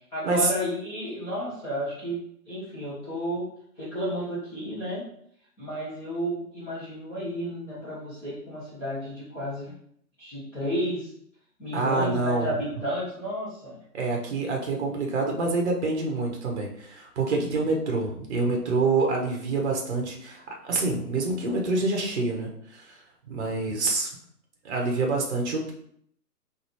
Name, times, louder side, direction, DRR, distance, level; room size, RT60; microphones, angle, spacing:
voice 1, 0.1-3.4 3.8-5.0 5.6-9.7 10.2-11.1 11.6-13.8, equal, 5° left, -13 dB, 0.8 m, -32 dB
voice 2, 11.7-12.5 13.9-23.0 23.3-24.1 24.6-25.7, right 3 dB, 45° right, 1 dB, 0.9 m, -27 dB
3.9 x 2.7 x 3.0 m, 0.67 s
figure-of-eight pair, 140°, 49 cm